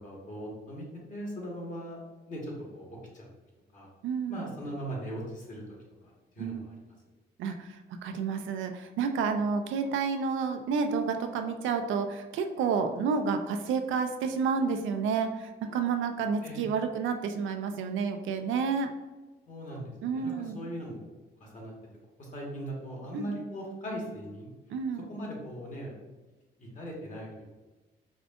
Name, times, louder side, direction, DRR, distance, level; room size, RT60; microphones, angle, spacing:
voice 1, 0.0-2.0 2.3-3.3 3.7-3.9 4.3-5.6 6.0-6.7 16.4-16.6 19.5-21.1 21.4-21.7 22.2-24.5 25.1-25.9 26.6-27.4, right 1 dB, 40° left, -2 dB, 1.3 m, -39 dB
voice 2, 4.0-4.4 6.4-6.6 7.4-7.8 8.0-18.9 20.0-20.6 23.1-23.3 24.7-25.0, right 5 dB, 80° right, 6 dB, 0.4 m, -30 dB
5.0 x 2.4 x 2.4 m, 1.2 s
cardioid pair, 90°, 20 cm